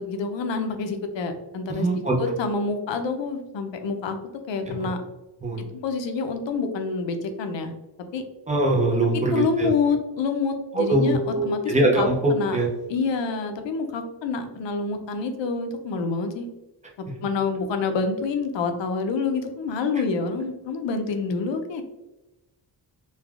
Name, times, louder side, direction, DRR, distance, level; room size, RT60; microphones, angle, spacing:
voice 1, 0.1-4.2 4.5-5.0 5.6-7.7 8.1-8.2 9.3-12.6 12.9-16.5 17.2-21.8, left 4 dB, 80° left, 6 dB, 0.5 m, -27 dB
voice 2, 1.7-2.2 4.7-4.9 5.4-5.7 8.5-9.7 10.7-12.7, right 1 dB, 20° right, -2 dB, 0.4 m, -22 dB
3.2 x 2.2 x 2.3 m, 1.0 s
wide cardioid pair, 180°, 44 cm